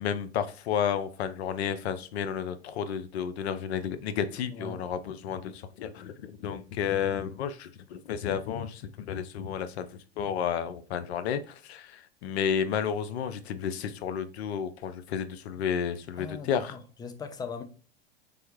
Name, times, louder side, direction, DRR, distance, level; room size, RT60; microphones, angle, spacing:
voice 1, 0.0-16.7, left 8 dB, 75° left, 0.5 m, -32 dB
voice 2, 4.5-4.8 16.2-17.6, left 5 dB, 15° left, 0.4 m, -39 dB
3.3 x 2.2 x 3.1 m
hypercardioid pair, 100°, 32 cm